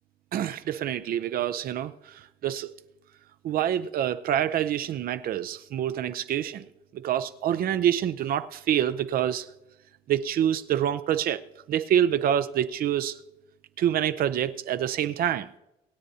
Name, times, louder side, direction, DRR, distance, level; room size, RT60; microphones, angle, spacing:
voice 1, 0.3-1.9 2.4-2.7 3.4-6.6 6.9-9.5 10.1-11.4 11.7-13.2 13.8-15.5, right 10 dB, 60° right, 0.6 m, -26 dB
25.5 x 8.9 x 2.8 m
cardioid pair, 110°, 17 cm